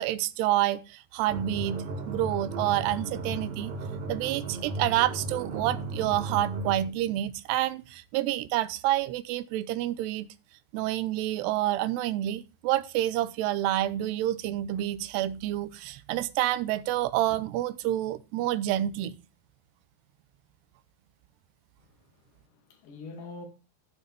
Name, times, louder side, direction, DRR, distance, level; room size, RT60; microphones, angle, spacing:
voice 1, 0.0-3.7 4.1-10.3 10.7-19.2, right 14 dB, 85° right, 2.8 m, -28 dB
sound 1, 1.3-6.9, right 2 dB, 55° right, 1.6 m, -35 dB
voice 2, 21.8-23.5, left 3 dB, 55° left, 3.7 m, -45 dB
14.5 x 6.4 x 3.5 m
omnidirectional pair, 4.9 m